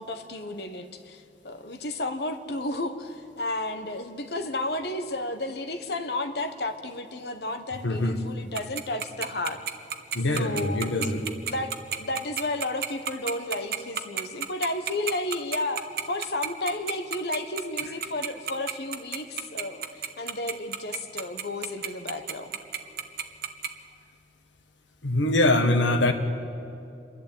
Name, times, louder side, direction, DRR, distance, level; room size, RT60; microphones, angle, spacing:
voice 1, 0.0-9.6 10.4-11.1 11.4-11.7 12.0-22.5, left 2 dB, 65° left, 7 dB, 1.3 m, -32 dB
voice 2, 7.8-8.2 10.1-11.3 25.0-26.1, left 2 dB, 90° left, 6 dB, 1.6 m, -23 dB
Tick-tock, 8.5-23.7, right 8 dB, 55° right, 1.0 m, -30 dB
27.0 x 11.5 x 8.9 m, 2.6 s
head